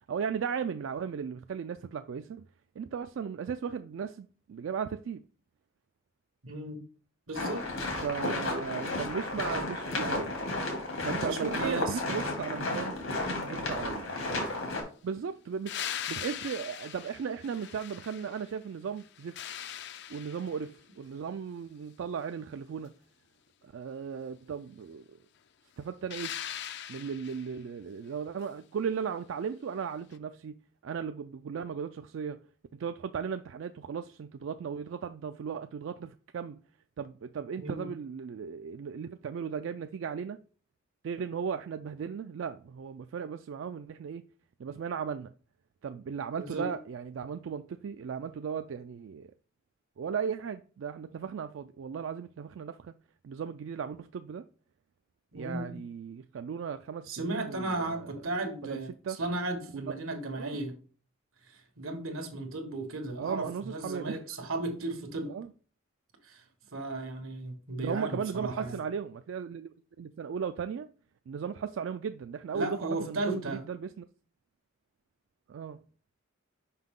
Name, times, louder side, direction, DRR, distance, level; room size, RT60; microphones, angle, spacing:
voice 1, 0.1-2.4 2.8-5.2 8.0-10.4 11.0-14.1 15.0-19.4 20.1-22.9 23.6-25.2 25.8-26.3 26.9-30.6 30.8-32.5 32.7-36.6 37.0-40.4 41.0-44.2 44.6-45.3 45.8-49.3 50.0-52.9 53.2-54.4 55.3-58.0 58.6-58.8 59.0-59.2 60.3-60.6 63.2-64.2 65.3-65.5 67.8-70.9 71.3-74.1 75.5-75.8, right 6 dB, 65° right, 0.3 m, -36 dB
voice 2, 6.4-6.8 7.3-7.6 11.2-12.1 37.6-37.9 46.4-46.7 55.3-55.8 57.1-60.7 61.5-65.3 66.2-66.4 66.7-68.8 72.5-73.6, right 2 dB, 90° right, 1.4 m, -35 dB
sound 1, 7.3-14.8, left 2 dB, 85° left, 2.3 m, -33 dB
sound 2, 15.7-18.6 19.0-20.7 26.1-27.5 30.1-30.2, left 10 dB, 55° left, 0.4 m, -40 dB
5.7 x 5.3 x 3.7 m
head